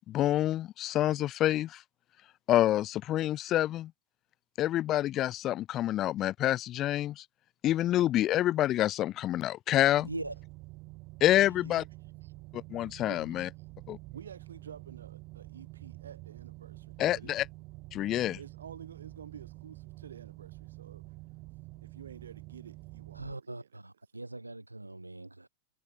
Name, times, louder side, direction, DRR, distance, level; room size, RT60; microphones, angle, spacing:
voice 1, 0.1-1.8 2.5-3.9 4.6-7.2 7.6-10.1 11.2-11.8 12.5-13.5 13.9-14.0 17.0-17.5 17.9-18.4, left 13 dB, 35° left, 0.4 m, -27 dB
sound 1, 9.9-23.3, right 23 dB, 40° right, 3.1 m, -48 dB
voice 2, 13.1-13.5 14.1-17.3 18.4-21.0 21.8-23.7, right 7 dB, 70° right, 7.9 m, -50 dB
voice 3, 23.1-25.5, right 2 dB, 85° right, 2.6 m, -41 dB
figure-of-eight pair, 90°, 0 cm